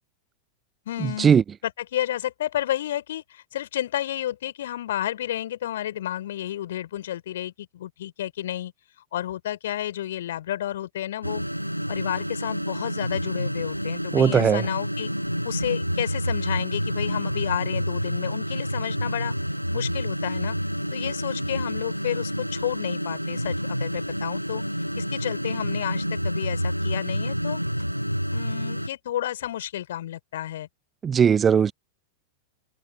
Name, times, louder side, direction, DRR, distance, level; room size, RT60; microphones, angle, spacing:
voice 1, 0.9-1.3 1.6-8.7 9.1-11.4 11.9-15.1 15.4-19.3 19.7-20.6 20.9-24.6 25.0-27.6 28.3-30.7, left 12 dB, 60° left, 5.3 m, -31 dB
sound 1, 11.2-28.9, equal, 90° right, 7.1 m, -29 dB
voice 2, 14.1-14.6 31.0-31.7, right 7 dB, 20° right, 0.4 m, -18 dB
figure-of-eight pair, 90°, 0 cm